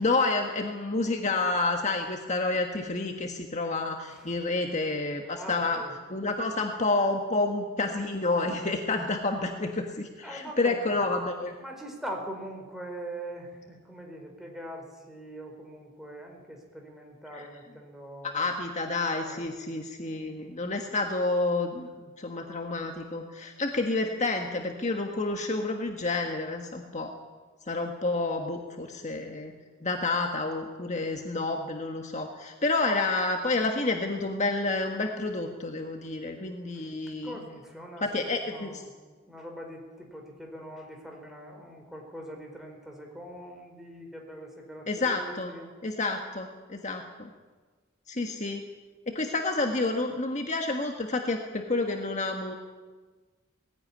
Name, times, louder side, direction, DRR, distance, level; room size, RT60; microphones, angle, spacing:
voice 1, 0.0-5.8 6.1-11.5 17.3-17.5 18.2-21.9 22.2-27.1 27.7-29.5 29.8-37.4 38.0-38.8 44.9-45.5 45.8-47.3 48.1-48.6 49.1-52.5, left 3 dB, 35° left, 3 dB, 1.6 m, -29 dB
voice 2, 5.4-5.9 10.2-11.0 11.6-18.4 19.2-19.5 20.1-20.6 36.7-36.9 37.2-38.9 39.3-45.7, right 1 dB, ahead, 1 dB, 4.5 m, -42 dB
19.5 x 16.0 x 10.0 m, 1.3 s
head